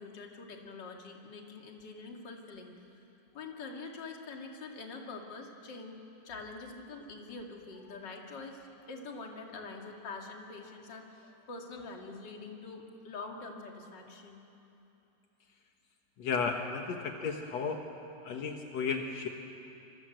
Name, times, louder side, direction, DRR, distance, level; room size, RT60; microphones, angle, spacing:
voice 1, 0.0-2.7 3.3-6.0 6.2-14.4, left 3 dB, 35° left, 1 dB, 1.8 m, -45 dB
voice 2, 16.2-17.8 18.2-19.3, left 5 dB, 90° left, 3 dB, 1.4 m, -33 dB
26.0 x 26.0 x 7.9 m, 2.9 s
omnidirectional pair, 5.2 m